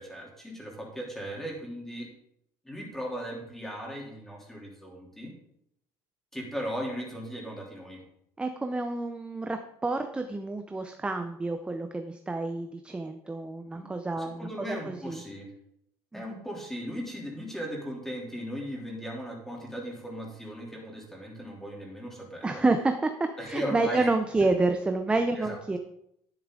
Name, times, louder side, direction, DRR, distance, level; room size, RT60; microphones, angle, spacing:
voice 1, 0.0-2.1 2.6-5.3 6.3-8.0 13.7-13.9 14.2-15.5 16.1-22.6 23.4-24.1 25.4-25.8, equal, 5° left, -1 dB, 3.2 m, -37 dB
voice 2, 8.4-15.2 16.1-16.2 22.4-25.8, right 2 dB, 10° right, 7 dB, 0.6 m, -29 dB
10.5 x 10.0 x 3.8 m, 0.75 s
cardioid pair, 135°, 9 cm